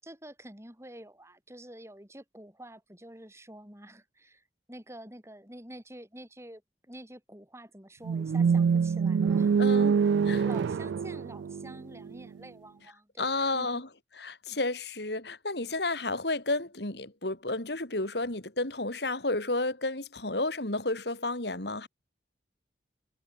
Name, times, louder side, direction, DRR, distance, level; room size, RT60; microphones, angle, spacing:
voice 1, 0.0-6.6 6.9-9.5 10.4-13.8, right 1 dB, 15° right, 7.6 m, -48 dB
sound 1, 8.0-12.2, right 6 dB, 70° right, 0.3 m, -25 dB
voice 2, 9.6-10.0 10.3-10.4 13.2-13.8 14.2-21.9, left 2 dB, 60° left, 3.1 m, -31 dB
head